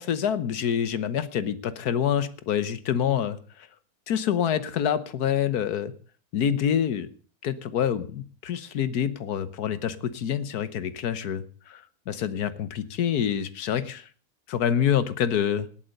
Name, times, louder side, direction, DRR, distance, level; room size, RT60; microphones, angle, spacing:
voice 1, 0.0-3.4 4.1-5.9 6.3-7.1 7.4-14.1 14.5-15.7, left 9 dB, 80° left, 15 dB, 1.6 m, -26 dB
18.0 x 8.6 x 6.5 m, 0.42 s
omnidirectional pair, 1.6 m